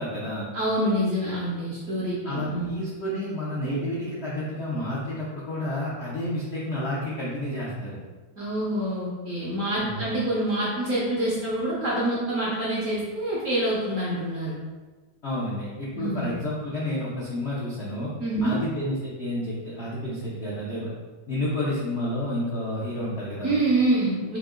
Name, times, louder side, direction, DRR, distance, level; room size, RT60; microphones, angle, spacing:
voice 1, 0.0-0.5 2.2-8.0 9.8-10.1 15.2-18.1 18.4-20.9 21.3-23.6, left 1 dB, 75° left, -7 dB, 0.6 m, -30 dB
voice 2, 0.5-2.7 8.4-14.6 15.9-16.3 18.2-18.6 23.4-24.4, right 1 dB, 65° right, -7 dB, 0.8 m, -26 dB
3.6 x 2.7 x 3.6 m, 1.3 s
omnidirectional pair, 2.2 m